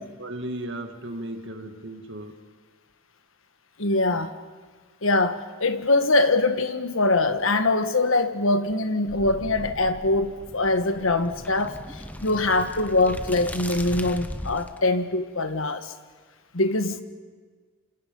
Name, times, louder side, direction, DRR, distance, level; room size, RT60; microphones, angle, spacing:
voice 1, 0.2-2.4, right 1 dB, 55° right, 2.4 m, -35 dB
voice 2, 3.8-4.3 5.0-15.9 16.5-17.0, left 2 dB, 70° left, 1.5 m, -23 dB
sound 1, 9.1-14.8, left 1 dB, 5° left, 0.9 m, -38 dB
28.0 x 27.0 x 5.5 m
head